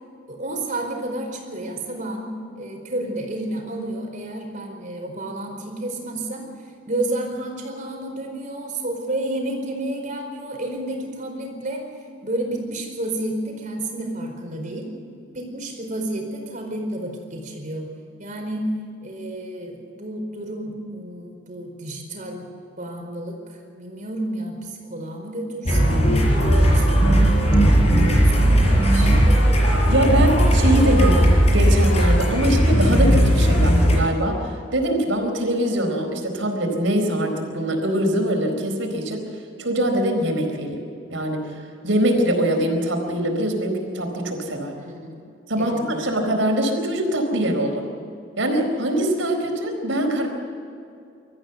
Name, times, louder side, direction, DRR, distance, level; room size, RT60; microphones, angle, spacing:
voice 1, 0.3-11.9 12.2-14.9 15.3-17.9 18.2-18.7 19.0-22.5 22.8-26.2 26.6-27.0 27.7-29.6 44.7-45.2 45.6-46.1, right 1 dB, 40° right, 2 dB, 4.6 m, -31 dB
sound 1, 25.7-34.0, equal, 35° left, 5.5 m, -17 dB
voice 2, 29.9-39.2 39.6-40.8 41.1-44.7 45.5-47.8 48.4-50.3, right 1 dB, 90° right, 3 dB, 4.4 m, -23 dB
24.5 x 14.0 x 8.0 m, 2.5 s
head